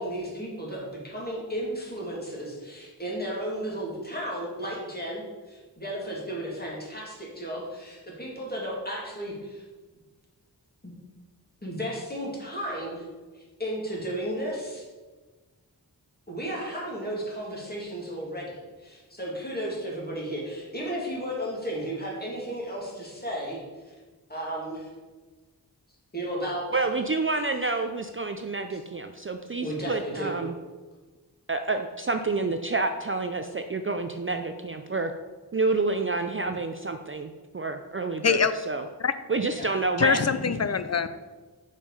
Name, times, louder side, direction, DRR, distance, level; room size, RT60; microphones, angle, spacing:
voice 1, 0.0-9.6 10.8-10.9 11.6-13.1 13.3-14.9 16.3-23.6 23.9-24.0 24.3-24.9 26.1-26.8 28.7-28.8 29.6-30.3 39.6-39.7, equal, 25° left, -4 dB, 2.3 m, -34 dB
voice 2, 26.7-30.5 31.5-35.1 35.5-38.4 38.7-38.8 39.3-40.2, right 3 dB, 35° right, 6 dB, 0.4 m, -28 dB
voice 3, 40.0-41.1, left 6 dB, 40° left, 12 dB, 0.4 m, -23 dB
5.5 x 4.9 x 5.4 m, 1.3 s
wide cardioid pair, 65°, 40 cm